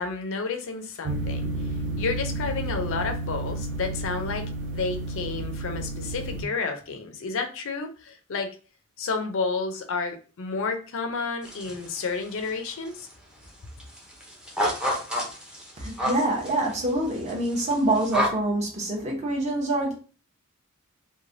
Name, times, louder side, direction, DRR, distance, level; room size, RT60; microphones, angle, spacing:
voice 1, 0.0-8.5 9.0-13.1, left 4 dB, 65° left, 0.5 m, -31 dB
sound 1, 1.0-6.4, right 2 dB, 55° right, 0.3 m, -31 dB
sound 2, 11.4-12.1 12.3-13.1 13.4-13.5 13.8-18.3, equal, 5° right, 0.6 m, -29 dB
voice 2, 15.8-19.9, right 1 dB, 30° right, 0.8 m, -26 dB
3.1 x 2.2 x 2.5 m
head